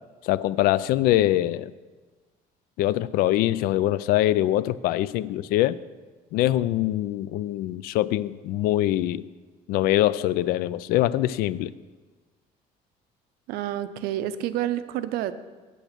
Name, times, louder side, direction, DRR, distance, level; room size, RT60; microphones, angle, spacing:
voice 1, 0.2-1.7 2.8-5.8 6.3-9.2 9.7-11.7, left 14 dB, 75° left, 18 dB, 0.4 m, -23 dB
voice 2, 13.5-15.3, right 12 dB, 85° right, 12 dB, 0.6 m, -29 dB
8.8 x 8.5 x 6.6 m, 1.3 s
cardioid pair, 180°, 16 cm